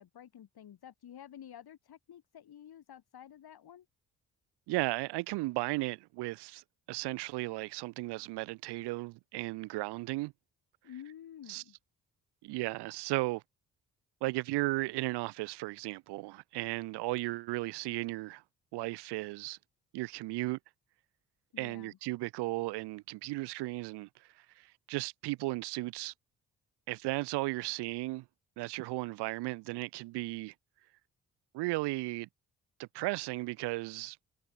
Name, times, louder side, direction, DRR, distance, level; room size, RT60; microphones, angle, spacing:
voice 1, 0.0-3.9 10.8-11.8 21.5-22.0, left 10 dB, 55° left, 5.3 m, -51 dB
voice 2, 4.7-10.3 11.5-11.6 12.4-13.4 14.2-18.4 18.7-19.6 19.9-20.6 21.6-24.1 24.6-26.1 26.9-28.2 28.6-30.5 31.5-32.3 32.8-34.2, right 21 dB, 65° right, 0.7 m, -35 dB
hypercardioid pair, 45°, 44 cm